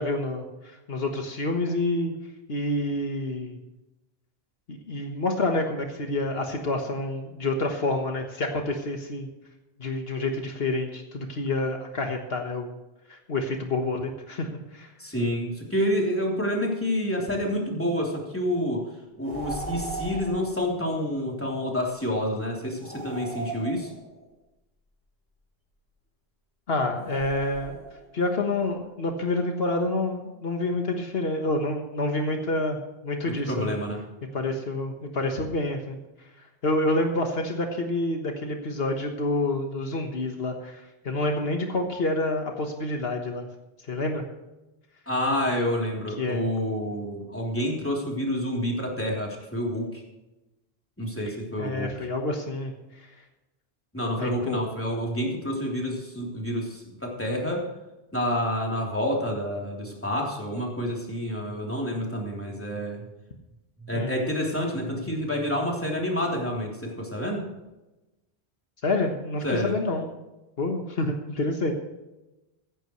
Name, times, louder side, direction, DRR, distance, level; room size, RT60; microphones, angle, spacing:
voice 1, 0.0-2.2 2.5-3.6 4.7-9.3 9.8-12.7 13.1-14.9 26.7-27.8 28.1-33.8 34.3-36.0 36.4-43.5 43.9-44.2 46.2-46.5 51.6-53.1 54.2-54.6 63.9-64.2 68.8-70.1 70.6-71.7, left 2 dB, 70° left, 3 dB, 1.5 m, -28 dB
voice 2, 15.0-18.8 19.2-23.9 33.5-34.0 45.1-50.0 51.0-51.9 53.9-57.6 58.1-63.0 63.9-67.4 69.4-69.7, equal, 10° left, -2 dB, 3.4 m, -28 dB
sound 1, 19.2-20.6 22.8-24.2 26.9-28.1, right 2 dB, 50° right, 4.2 m, -37 dB
15.0 x 15.0 x 3.2 m, 1.0 s
omnidirectional pair, 1.1 m